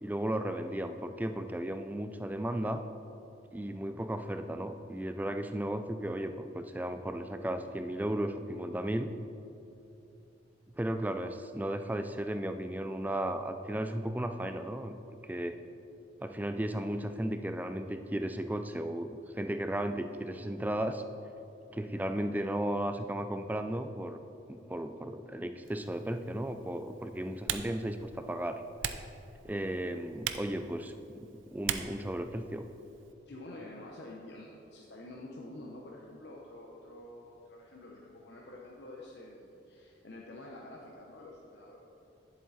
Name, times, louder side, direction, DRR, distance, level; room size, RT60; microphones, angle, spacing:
voice 1, 0.0-2.8 3.5-9.1 10.8-15.6 16.2-21.0 21.7-24.2 24.5-28.6 29.4-32.7, right 1 dB, 10° right, 8 dB, 0.3 m, -35 dB
Typing, 25.6-33.1, right 9 dB, 80° right, 0.5 m, -42 dB
voice 2, 33.3-41.8, left 1 dB, 60° left, -3 dB, 0.8 m, -48 dB
10.5 x 7.5 x 4.1 m, 2.9 s
head